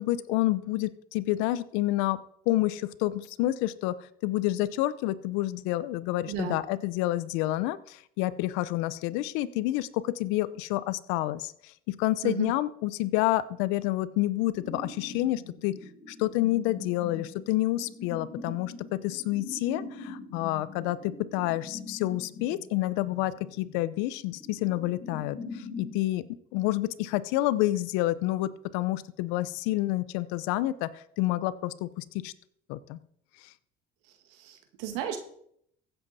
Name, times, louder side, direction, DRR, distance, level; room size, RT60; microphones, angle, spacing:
voice 1, 0.0-2.2 2.5-15.8 16.1-26.2 26.5-32.3 32.7-33.0, left 16 dB, 85° left, 17 dB, 0.7 m, -29 dB
voice 2, 6.3-6.6 12.2-12.5 34.4-35.2, right 9 dB, 85° right, 6 dB, 1.9 m, -33 dB
sound 1, 14.5-26.0, left 3 dB, 55° left, 4.9 m, -43 dB
15.0 x 7.8 x 4.2 m, 0.68 s
supercardioid pair, 85°, 20 cm